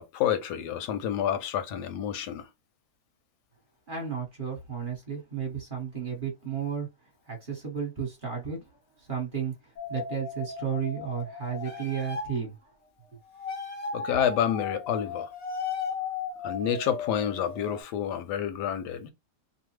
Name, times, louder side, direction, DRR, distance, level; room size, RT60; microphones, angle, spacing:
voice 1, 0.0-2.5 13.9-15.3 16.4-19.1, left 9 dB, 85° left, 1.2 m, -29 dB
voice 2, 3.9-6.9 7.3-8.6 9.0-9.5 9.9-12.7, right 7 dB, 35° right, 1.0 m, -33 dB
sound 1, 9.8-12.4 13.3-17.8, left 5 dB, 40° left, 0.6 m, -36 dB
2.9 x 2.0 x 3.0 m
omnidirectional pair, 1.7 m